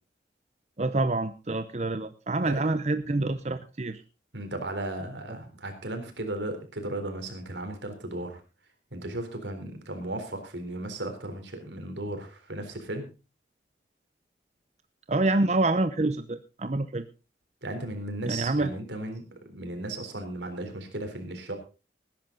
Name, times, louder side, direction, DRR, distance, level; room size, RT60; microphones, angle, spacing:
voice 1, 0.8-4.0 15.1-17.0 18.3-18.7, right 2 dB, 40° right, 10 dB, 0.7 m, -27 dB
voice 2, 4.3-8.4 8.9-13.0 17.6-21.5, right 1 dB, 90° right, 6 dB, 3.9 m, -35 dB
19.5 x 10.5 x 3.9 m, 0.31 s
head